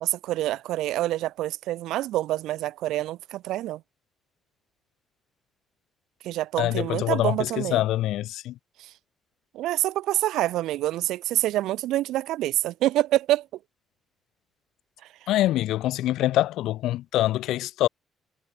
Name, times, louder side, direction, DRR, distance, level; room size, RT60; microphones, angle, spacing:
voice 1, 0.0-3.8 6.2-7.8 8.8-8.9 9.5-13.5, right 15 dB, 90° right, 0.3 m, -26 dB
voice 2, 6.6-8.5 15.3-17.9, left 14 dB, 90° left, 0.3 m, -25 dB
cardioid pair, 90°, 0 cm